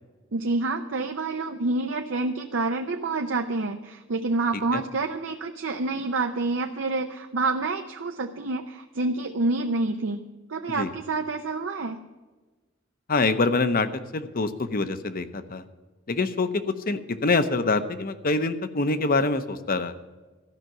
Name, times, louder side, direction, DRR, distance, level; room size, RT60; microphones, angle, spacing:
voice 1, 0.3-10.2 10.5-12.0, right 3 dB, 70° right, 5 dB, 0.6 m, -28 dB
voice 2, 13.1-13.9 14.1-15.6 16.1-19.9, left 3 dB, 45° left, 11 dB, 0.8 m, -25 dB
14.0 x 5.8 x 8.9 m, 1.2 s
head